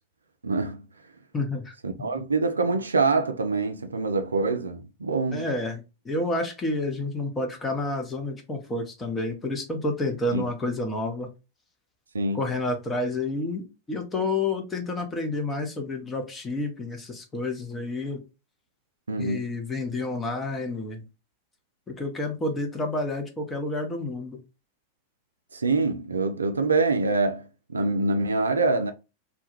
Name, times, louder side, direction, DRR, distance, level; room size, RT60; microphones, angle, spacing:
voice 1, 0.4-0.8 1.8-5.4 10.3-10.4 12.1-12.4 19.1-19.4 25.5-27.4 27.7-28.9, right 3 dB, 75° right, 0.3 m, -25 dB
voice 2, 1.3-2.1 5.3-11.3 12.3-18.2 19.2-21.0 22.0-24.4, left 2 dB, 15° left, 0.7 m, -29 dB
2.2 x 2.2 x 2.9 m
figure-of-eight pair, 90°, 0 cm